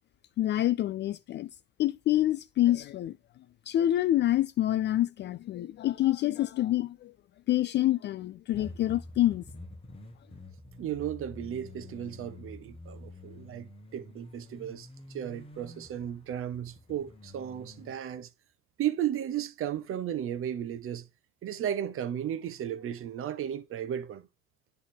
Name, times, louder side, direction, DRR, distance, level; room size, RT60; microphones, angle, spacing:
voice 1, 0.4-1.5 1.8-3.2 3.7-7.1 7.5-9.4, left 13 dB, 30° left, 0.4 m, -27 dB
sound 1, 8.5-18.0, left 2 dB, 15° left, 1.4 m, -48 dB
voice 2, 10.8-18.3 18.8-21.1 21.4-24.3, right 10 dB, 40° right, 0.9 m, -35 dB
10.0 x 3.4 x 4.4 m
hypercardioid pair, 75°, 35 cm